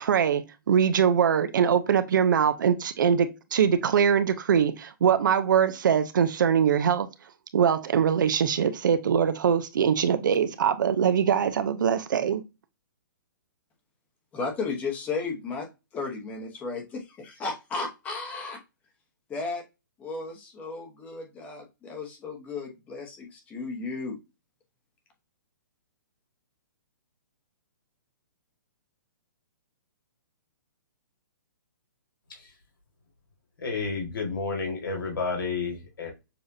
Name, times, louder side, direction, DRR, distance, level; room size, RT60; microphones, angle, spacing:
voice 1, 0.0-7.1 7.5-12.4, right 8 dB, 65° right, 0.6 m, -23 dB
voice 2, 14.3-15.7 15.9-18.6 19.3-19.6 20.0-24.2, left 4 dB, 15° left, 1.0 m, -34 dB
voice 3, 33.6-36.1, left 4 dB, 80° left, 1.8 m, -30 dB
6.8 x 2.4 x 2.6 m
hypercardioid pair, 165°, 11 cm